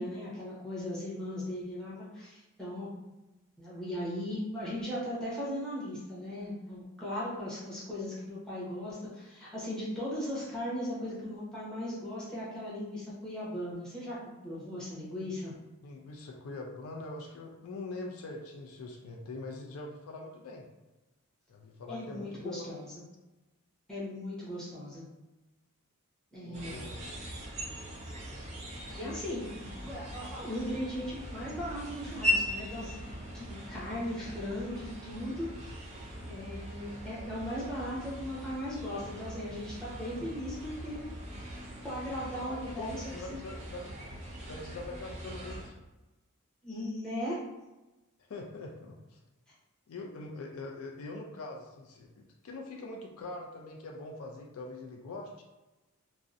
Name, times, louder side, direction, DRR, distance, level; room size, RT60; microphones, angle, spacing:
voice 1, 0.0-2.9 3.6-14.2 14.4-15.5 21.9-22.9 23.9-25.0 26.3-26.8 28.9-33.1 33.3-41.1 41.8-43.0 43.3-43.4 46.6-47.4, left 1 dB, 5° left, -8 dB, 0.7 m, -38 dB
voice 2, 15.8-20.7 21.5-22.8 26.4-27.2 42.5-43.9 44.5-45.8 48.3-49.2 49.9-55.4, left 2 dB, 75° left, 1 dB, 0.4 m, -43 dB
sound 1, 26.5-45.7, equal, 30° right, 0.4 m, -40 dB
2.6 x 2.0 x 2.4 m, 1.1 s
head